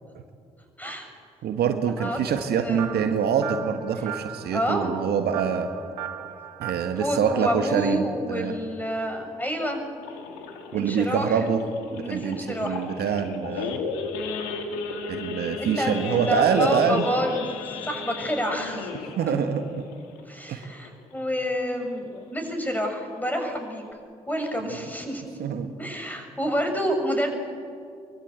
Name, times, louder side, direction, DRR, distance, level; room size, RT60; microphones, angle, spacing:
voice 1, 1.4-5.7 6.6-8.5 10.7-11.6 11.9-13.8 15.1-17.1 19.2-19.6 20.5-20.6 24.6-24.8 25.4-25.7, right 7 dB, 60° right, 7 dB, 1.5 m, -25 dB
voice 2, 2.6-3.1 4.5-4.9 7.0-9.8 10.7-11.4 11.9-12.8 15.6-18.9 19.3-19.4 20.3-23.8 24.3-25.5 25.8-27.3, equal, 10° left, 4 dB, 6.2 m, -28 dB
sound 1, 2.8-7.6, right 11 dB, 85° right, 0.9 m, -37 dB
Idling / Accelerating revving vroom / Sawing, 10.0-21.1 21.5-21.7 22.0-22.1 22.5-22.8 23.3-23.4 23.6-23.9, left 4 dB, 75° left, 2.2 m, -35 dB
23.5 x 22.0 x 8.2 m, 2.3 s
figure-of-eight pair, 40°, 18 cm